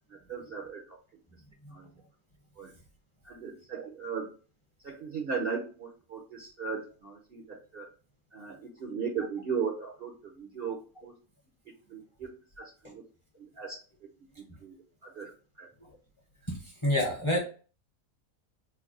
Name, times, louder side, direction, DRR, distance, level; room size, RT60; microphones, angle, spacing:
voice 1, 0.1-1.0 1.7-1.9 2.6-2.7 3.2-4.3 4.8-7.9 8.3-11.1 11.9-13.0 13.4-13.8 14.6-14.8 15.0-15.3 15.6-15.7, right 6 dB, 55° right, -1 dB, 0.6 m, -37 dB
voice 2, 16.8-17.4, left 1 dB, 25° left, -1 dB, 0.7 m, -26 dB
3.3 x 2.2 x 3.7 m, 0.37 s
omnidirectional pair, 1.6 m